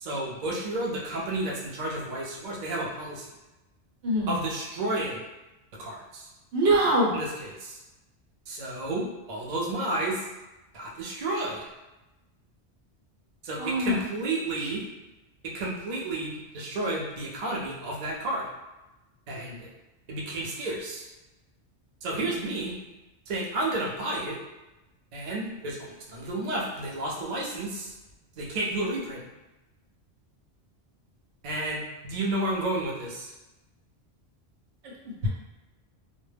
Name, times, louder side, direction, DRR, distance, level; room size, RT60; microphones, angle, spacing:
voice 1, 0.0-3.3 4.3-5.2 5.8-6.3 7.1-7.8 8.5-10.3 10.7-11.7 13.4-14.8 15.4-18.5 19.3-19.7 20.1-21.1 22.0-22.8 23.3-24.4 25.1-27.9 28.4-29.2 31.4-33.3, right 2 dB, 50° right, -3 dB, 0.5 m, -31 dB
voice 2, 6.5-7.1 13.6-14.0 14.6-14.7 35.2-35.3, right 1 dB, 85° right, -3 dB, 1.0 m, -23 dB
2.1 x 2.0 x 3.2 m, 1.0 s
omnidirectional pair, 1.1 m